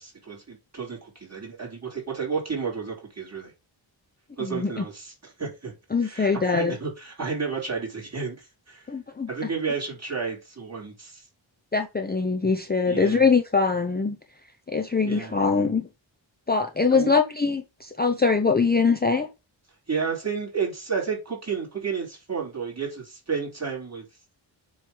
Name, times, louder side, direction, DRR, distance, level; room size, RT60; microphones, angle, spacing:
voice 1, 0.0-3.5 4.4-5.7 6.0-8.9 9.3-11.2 12.8-13.3 15.1-15.3 16.9-17.1 19.9-24.0, right 5 dB, 35° right, 3.6 m, -31 dB
voice 2, 4.4-4.8 5.9-6.7 8.9-9.3 11.7-14.2 14.7-15.9 16.5-19.3, left 4 dB, 20° left, 0.6 m, -23 dB
7.5 x 3.2 x 5.4 m
wide cardioid pair, 115°, 46 cm